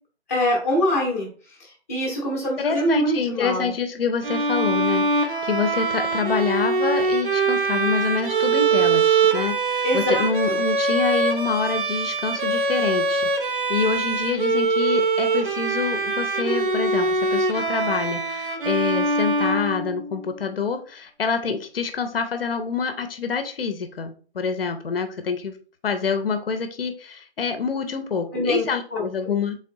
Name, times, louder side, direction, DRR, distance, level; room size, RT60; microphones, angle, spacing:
voice 1, 0.3-1.3 1.9-3.7 9.8-10.6 28.3-28.7 28.9-29.3, equal, 15° left, -3 dB, 0.7 m, -24 dB
voice 2, 2.6-25.5 25.8-29.6, left 5 dB, 60° left, 8 dB, 0.6 m, -26 dB
Bowed string instrument, 4.2-20.3, right 3 dB, 50° right, 0.6 m, -23 dB
3.6 x 3.6 x 2.6 m, 0.39 s
figure-of-eight pair, 155°, 33 cm